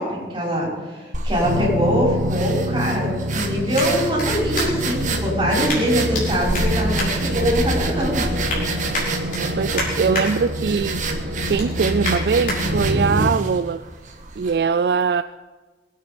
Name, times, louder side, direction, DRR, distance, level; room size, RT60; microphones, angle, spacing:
voice 1, 0.0-8.2, equal, 25° right, 5.7 m, -23 dB
sound 1, 1.1-14.6, right 3 dB, 45° right, 1.5 m, -30 dB
sound 2, 1.4-13.3, equal, 85° right, 2.1 m, -26 dB
sound 3, 3.7-5.0 5.7-6.2 6.5-7.8 8.2-8.6 8.9-10.3 10.7-10.9 11.3-12.6 13.1-13.2, left 2 dB, 50° left, 4.8 m, -30 dB
voice 2, 9.4-11.1 11.5-13.8 14.4-15.2, right 5 dB, 60° right, 0.3 m, -21 dB
22.5 x 9.4 x 5.2 m
head